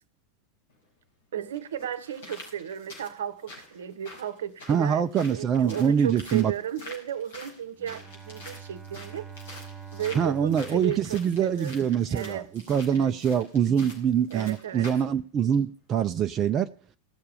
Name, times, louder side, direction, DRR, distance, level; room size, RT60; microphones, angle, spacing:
sound 1, 0.7-0.8 1.5-15.1 15.5-15.6, left 2 dB, 55° left, 5.0 m, -47 dB
voice 1, 1.3-9.3 9.9-12.5 12.9-13.2 14.3-14.9, right 10 dB, 60° right, 0.9 m, -35 dB
voice 2, 4.7-6.5 10.1-12.4 12.7-16.7, right 8 dB, 25° right, 0.6 m, -24 dB
Bowed string instrument, 7.8-12.1, right 7 dB, 10° right, 2.6 m, -45 dB
17.0 x 6.7 x 6.7 m
figure-of-eight pair, 90°, 0 cm